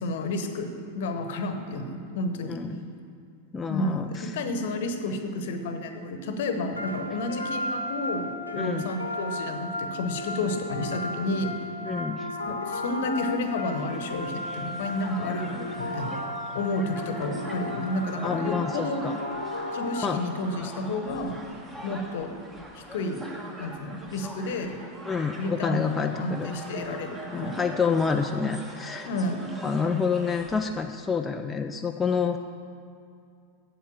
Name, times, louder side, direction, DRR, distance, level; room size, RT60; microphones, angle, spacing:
voice 1, 0.0-2.6 3.7-11.5 12.5-16.2 16.5-19.0 19.7-21.4 21.8-22.4 22.7-23.3 23.6-24.7 25.4-27.6 29.1-29.5, left 2 dB, 55° left, 7 dB, 1.0 m, -31 dB
voice 2, 2.5-2.8 3.5-4.4 8.6-8.9 11.9-12.3 18.2-19.2 20.0-20.2 25.1-26.5 27.3-29.1 29.6-32.4, left 5 dB, 15° left, 5 dB, 0.4 m, -28 dB
sound 1, 6.8-20.6, left 1 dB, 85° left, 1.0 m, -35 dB
Crowd, 13.4-30.7, right 1 dB, 15° right, 1.6 m, -42 dB
8.3 x 7.9 x 7.4 m, 2.3 s
figure-of-eight pair, 90°, 0 cm